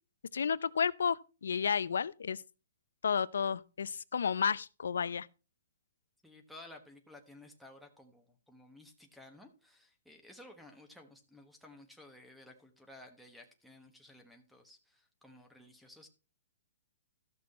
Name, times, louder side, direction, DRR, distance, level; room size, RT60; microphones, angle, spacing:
voice 1, 0.3-2.4 3.0-5.3, left 6 dB, 85° left, 0.5 m, -32 dB
voice 2, 6.2-16.1, left 1 dB, ahead, 1.2 m, -55 dB
13.5 x 6.1 x 4.2 m
hypercardioid pair, 155°, 0 cm